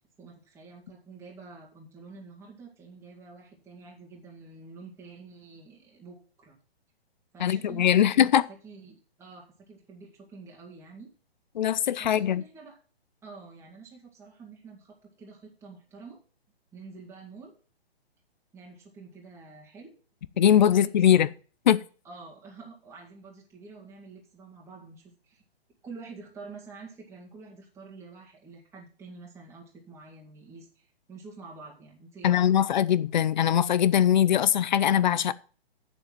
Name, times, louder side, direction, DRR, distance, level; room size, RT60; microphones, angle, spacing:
voice 1, 0.2-6.6 7.3-11.1 12.0-12.8 13.2-16.2 16.7-17.5 18.5-20.0 20.3-21.3 22.0-25.4 25.8-32.5, right 4 dB, 10° right, 2.0 m, -48 dB
voice 2, 7.4-8.4 11.5-12.4 20.4-21.3 21.7-21.8 32.2-35.3, left 10 dB, 45° left, 0.7 m, -21 dB
8.0 x 7.2 x 7.4 m
figure-of-eight pair, 135°, 32 cm